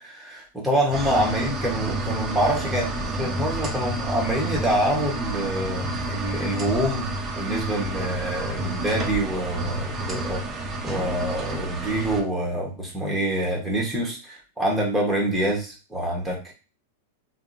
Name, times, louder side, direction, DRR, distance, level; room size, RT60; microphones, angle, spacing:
voice 1, 0.0-10.4 10.8-16.5, right 1 dB, 5° right, -3 dB, 1.0 m, -26 dB
sound 1, 0.9-12.2, right 2 dB, 20° right, 0.6 m, -30 dB
3.5 x 2.0 x 2.5 m, 0.34 s
hypercardioid pair, 120°, 0 cm